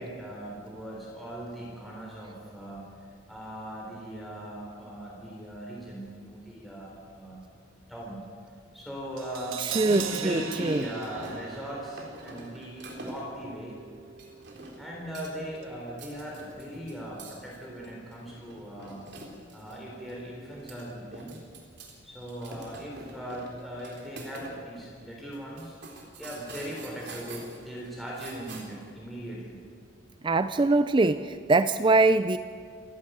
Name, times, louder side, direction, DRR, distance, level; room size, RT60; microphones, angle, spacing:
voice 1, 0.0-2.8 3.3-7.4 7.9-8.2 8.7-13.8 14.8-19.0 19.5-21.4 22.0-25.8 26.2-29.6, right 1 dB, ahead, -4 dB, 3.9 m, -39 dB
Crash cymbal, 9.2-15.3 15.6-15.7, right 8 dB, 90° right, 1.5 m, -40 dB
voice 2, 9.6-10.8 30.2-32.4, right 3 dB, 25° right, 12 dB, 0.4 m, -23 dB
sound 1, 9.7-11.6 12.0-13.4 14.2-14.9 15.1-15.6 15.9-19.8 20.1-20.2 20.5-21.9 22.2-24.6 24.8-24.9 25.3-28.9, right 2 dB, 55° right, 3.7 m, -45 dB
28.0 x 12.0 x 9.3 m, 2.1 s
head